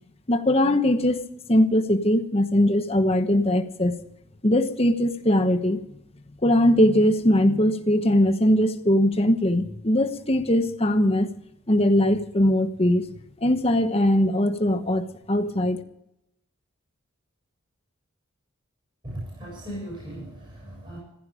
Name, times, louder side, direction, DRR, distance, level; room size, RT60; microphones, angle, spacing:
voice 1, 0.3-1.2 1.5-4.0 4.4-5.8 6.4-11.3 11.7-13.0 13.4-15.8, left 1 dB, 30° left, 9 dB, 1.1 m, -21 dB
voice 2, 19.0-21.0, right 1 dB, 25° right, -5 dB, 7.1 m, -37 dB
15.5 x 15.0 x 5.0 m, 0.82 s
head